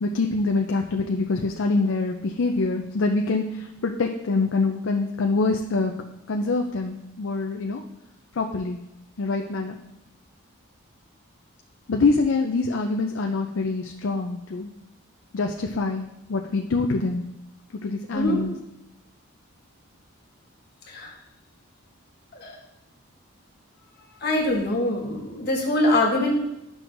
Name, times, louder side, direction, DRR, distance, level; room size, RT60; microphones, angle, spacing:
voice 1, 0.0-7.8 8.3-8.8 9.2-9.8 11.9-14.7 15.3-17.3 17.8-18.5, left 3 dB, 65° left, 3 dB, 0.5 m, -25 dB
voice 2, 24.2-26.3, left 1 dB, 50° left, -2 dB, 1.5 m, -23 dB
11.0 x 6.1 x 2.6 m, 0.89 s
head